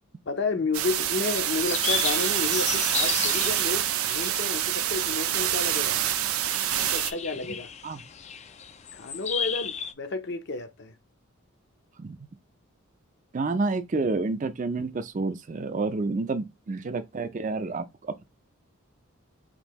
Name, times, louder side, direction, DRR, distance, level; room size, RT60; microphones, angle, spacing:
voice 1, 0.3-6.0 6.8-7.7 8.9-10.9, left 3 dB, 55° left, 0.7 m, -31 dB
sound 1, 0.7-7.1, right 11 dB, 85° right, 0.5 m, -26 dB
sound 2, 1.0-9.9, left 7 dB, 30° left, 0.3 m, -35 dB
voice 2, 13.3-18.2, right 3 dB, 35° right, 0.4 m, -29 dB
5.2 x 2.6 x 3.0 m
head